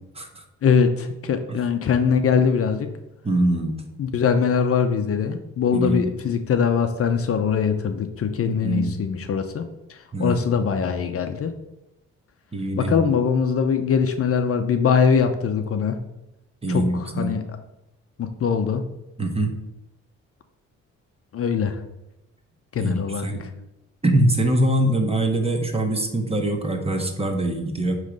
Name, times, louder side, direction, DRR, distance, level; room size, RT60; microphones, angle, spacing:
voice 1, 0.6-2.9 4.0-11.5 12.8-16.0 16.7-17.4 18.2-18.8 21.3-21.8 22.7-23.5, left 6 dB, 50° left, 7 dB, 0.7 m, -22 dB
voice 2, 3.2-3.8 5.7-6.1 8.5-9.0 10.1-10.6 12.5-13.1 16.6-17.3 19.2-19.5 22.8-23.4 24.0-28.0, right 1 dB, 20° right, 4 dB, 1.2 m, -23 dB
9.3 x 3.2 x 5.1 m, 0.92 s
cardioid pair, 90°, 30 cm